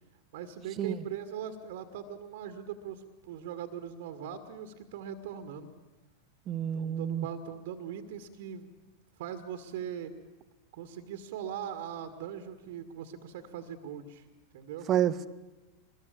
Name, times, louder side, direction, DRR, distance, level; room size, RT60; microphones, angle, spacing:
voice 1, 0.3-5.7 6.7-8.8 9.2-10.1 10.7-14.2 14.5-14.9, right 9 dB, 55° right, 9 dB, 2.1 m, -40 dB
voice 2, 6.5-7.3 14.9-15.3, right 10 dB, 30° right, 15 dB, 1.2 m, -29 dB
24.5 x 21.5 x 8.7 m, 1.1 s
figure-of-eight pair, 90°, 0 cm